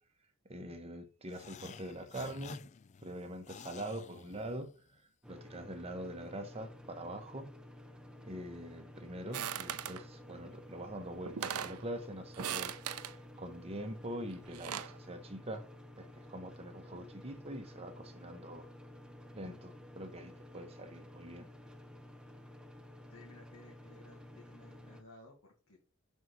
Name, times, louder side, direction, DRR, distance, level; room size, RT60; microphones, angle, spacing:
voice 1, 0.5-2.6 3.0-5.0 5.3-7.5 8.2-12.7 13.4-15.7 16.0-18.7 19.3-21.5, right 1 dB, 25° right, 1.0 m, -44 dB
sound 1, 1.3-5.0, left 6 dB, 30° left, 0.3 m, -52 dB
sound 2, 5.2-25.0, left 1 dB, 5° right, 0.6 m, -53 dB
sound 3, 9.3-10.0 10.9-11.0 11.3-11.8 12.3-13.1 14.3-15.0, right 9 dB, 85° right, 0.5 m, -39 dB
voice 2, 23.1-25.8, left 2 dB, 80° left, 1.8 m, -58 dB
6.4 x 4.6 x 4.0 m
head